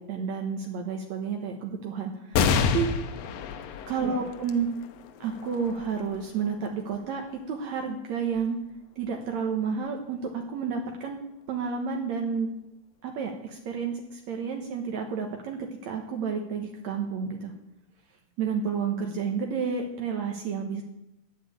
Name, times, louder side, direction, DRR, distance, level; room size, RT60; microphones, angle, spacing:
voice 1, 0.0-2.9 3.9-4.7 5.2-8.6 9.0-11.2 11.5-12.5 13.0-17.5 18.4-20.8, right 6 dB, 70° right, 2 dB, 2.4 m, -31 dB
sound 1, 2.3-9.2 9.8-9.9 11.1-11.6, left 6 dB, 65° left, 1.8 m, -31 dB
10.0 x 9.2 x 8.7 m, 0.85 s
omnidirectional pair, 3.5 m